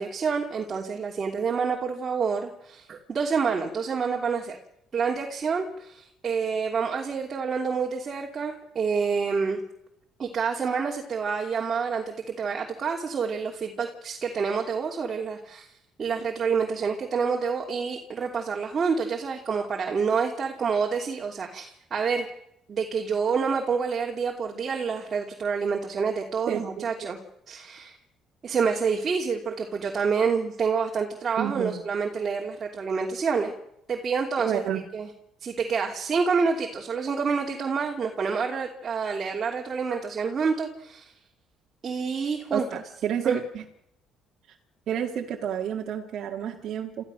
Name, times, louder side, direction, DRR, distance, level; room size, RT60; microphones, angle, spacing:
voice 1, 0.0-4.6 4.9-9.6 10.2-15.7 16.0-22.3 22.7-27.2 27.5-28.0 28.4-33.5 33.9-34.6 34.9-35.1 35.4-41.1 41.8-42.6 43.2-43.4, right 5 dB, 40° right, 0 dB, 3.0 m, -28 dB
voice 2, 26.5-26.9 31.4-31.8 34.5-34.8 42.5-43.6 44.5-44.6 44.9-47.0, right 9 dB, 65° right, 1 dB, 2.0 m, -30 dB
27.0 x 14.5 x 6.5 m, 0.78 s
cardioid pair, 85°, 0 cm